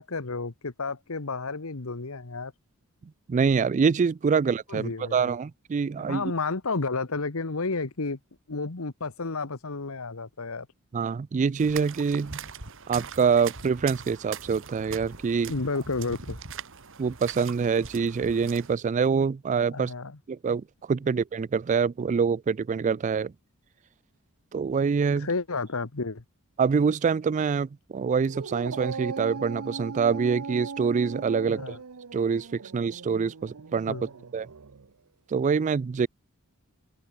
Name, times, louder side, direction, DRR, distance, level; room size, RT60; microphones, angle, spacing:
voice 1, 0.0-2.5 4.7-5.4 6.1-8.2 8.5-10.7 15.5-16.4 19.7-20.2 25.2-26.2 31.5-31.8 33.9-34.1, left 3 dB, 65° left, 1.3 m, -31 dB
voice 2, 3.3-6.2 10.9-12.4 12.9-15.5 17.0-19.9 20.3-23.3 24.5-25.3 26.6-31.7 32.1-34.0 34.3-34.5 35.3-36.1, right 5 dB, 35° right, 0.3 m, -25 dB
sound 1, 11.6-18.7, right 6 dB, 65° right, 3.0 m, -41 dB
Dog, 28.2-34.9, right 5 dB, 85° right, 0.8 m, -39 dB
head